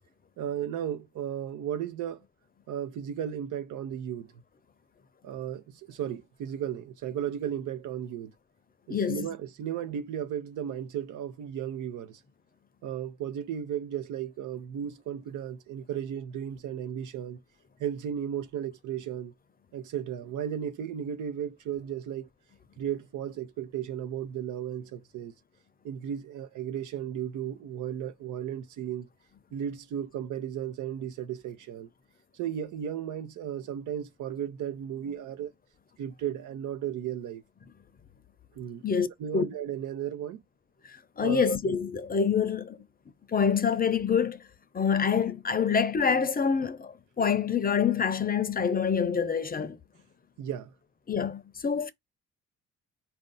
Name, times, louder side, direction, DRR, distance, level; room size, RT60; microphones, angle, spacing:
voice 1, 0.4-2.2 2.7-4.3 5.2-8.3 8.9-12.2 12.8-17.4 17.8-19.3 19.7-22.3 22.8-25.3 25.8-29.1 29.5-31.9 32.3-35.5 36.0-37.4 38.5-38.8 39.2-40.4 41.2-41.5 50.4-50.7, right 9 dB, 85° right, 0.8 m, -35 dB
voice 2, 8.9-9.3 38.8-39.5 41.2-42.8 43.3-44.4 44.7-49.8 51.1-51.9, left 6 dB, 30° left, 0.6 m, -26 dB
4.3 x 2.6 x 3.8 m
cardioid pair, 90°, 30 cm